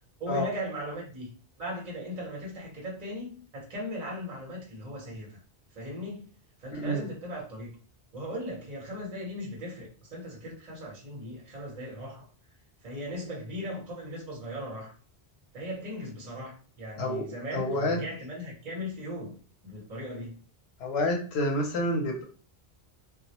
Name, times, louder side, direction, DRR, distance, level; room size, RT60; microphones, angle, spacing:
voice 1, 0.2-1.3 1.6-5.4 5.7-6.2 6.6-7.8 8.1-12.3 12.8-14.9 15.5-19.4 19.6-20.3, equal, 45° right, -2 dB, 0.8 m, -38 dB
voice 2, 6.7-7.1 17.0-18.0 20.8-22.2, left 1 dB, 85° left, 0 dB, 0.9 m, -29 dB
2.2 x 2.0 x 2.7 m, 0.40 s
omnidirectional pair, 1.0 m